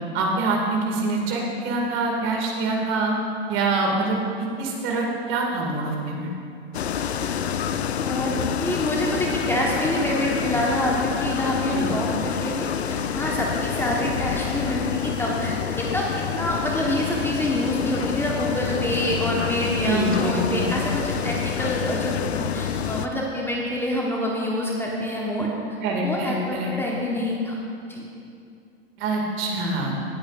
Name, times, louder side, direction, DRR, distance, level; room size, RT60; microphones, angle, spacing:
voice 1, 0.1-3.1 3.5-6.3 11.7-12.0 19.8-20.7 25.8-26.7 29.0-29.9, right 2 dB, 40° right, -1 dB, 2.1 m, -25 dB
sound 1, 6.7-23.1, left 8 dB, 80° left, 0.5 m, -27 dB
voice 2, 8.0-25.5 26.0-27.6 27.9-28.0, left 1 dB, 5° left, -3 dB, 1.2 m, -26 dB
18.0 x 8.7 x 2.5 m, 2.5 s
figure-of-eight pair, 95°, 32 cm